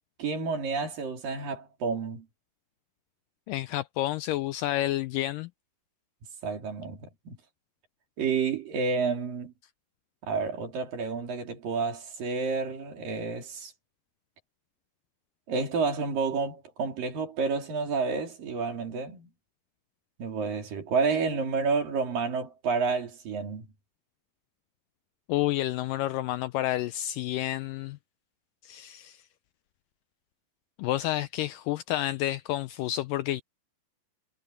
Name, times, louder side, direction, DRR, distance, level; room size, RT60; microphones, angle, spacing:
voice 1, 0.2-2.3 6.4-7.4 8.2-9.5 10.2-13.7 15.5-19.3 20.2-23.7, right 4 dB, 65° right, 5.2 m, -30 dB
voice 2, 3.5-5.5 25.3-28.0 28.6-29.2 30.8-33.4, left 14 dB, 80° left, 2.0 m, -30 dB
omnidirectional pair, 4.3 m